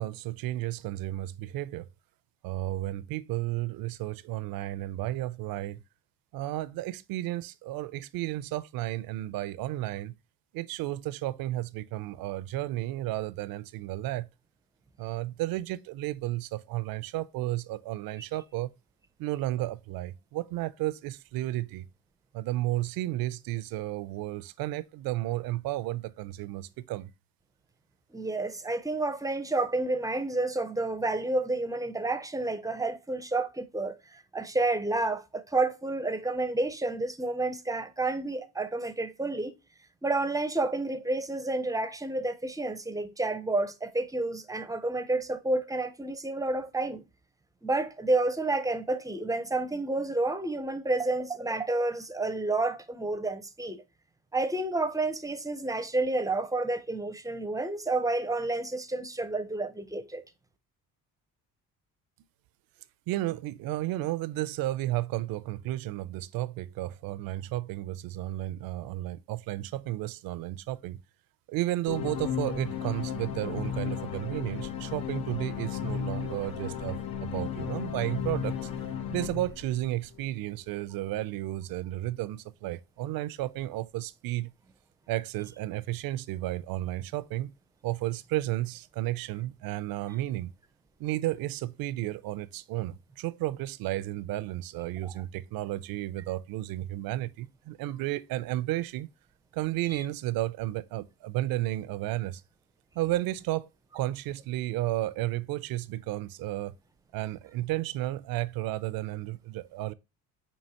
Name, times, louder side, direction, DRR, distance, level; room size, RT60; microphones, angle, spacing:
voice 1, 0.0-1.9 2.4-5.8 6.3-10.1 10.5-14.3 15.0-18.7 19.2-21.9 22.3-27.1 63.1-71.0 71.5-78.7 79.1-84.5 85.1-87.5 87.8-90.5 91.0-99.1 99.5-102.4 102.9-103.7 103.9-106.7 107.1-109.9, right 16 dB, 75° right, 0.5 m, -33 dB
voice 2, 28.1-39.5 40.0-47.0 47.6-53.8 54.3-60.2 95.0-95.1 100.0-100.1, right 2 dB, 10° right, 0.5 m, -30 dB
sound 1, 71.9-80.3, left 8 dB, 85° left, 0.8 m, -34 dB
5.4 x 2.8 x 2.8 m
cardioid pair, 95°, 35 cm